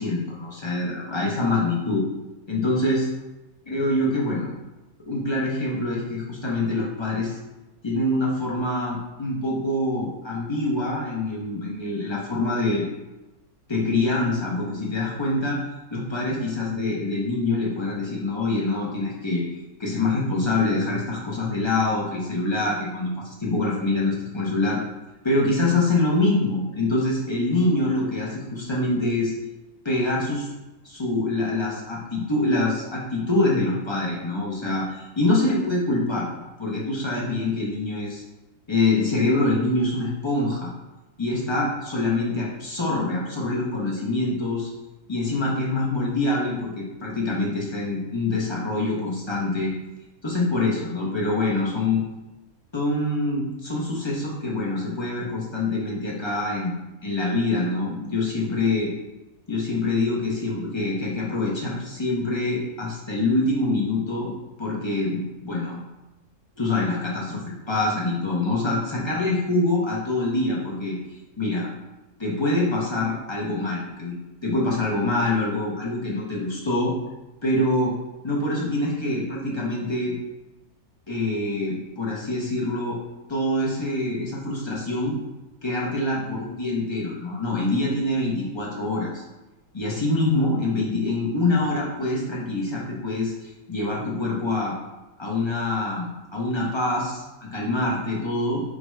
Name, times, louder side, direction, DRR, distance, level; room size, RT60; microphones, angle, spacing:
voice 1, 0.0-2.0 2.5-3.1 3.7-4.5 5.1-7.4 7.8-12.8 13.7-15.6 15.9-19.4 19.8-24.8 25.2-29.3 29.8-30.5 30.8-36.3 36.6-38.2 38.7-40.7 41.2-44.7 45.1-49.7 50.2-52.0 52.7-56.8 57.0-58.9 59.5-65.8 66.6-67.4 67.7-71.0 71.4-71.7 72.2-74.1 74.4-76.9 77.4-77.9 78.2-80.2 81.1-83.0 83.3-85.2 85.6-89.2 89.7-94.7 95.2-98.6, left 2 dB, 40° left, -4 dB, 0.3 m, -25 dB
5.0 x 2.1 x 4.6 m, 1.0 s
omnidirectional pair, 1.7 m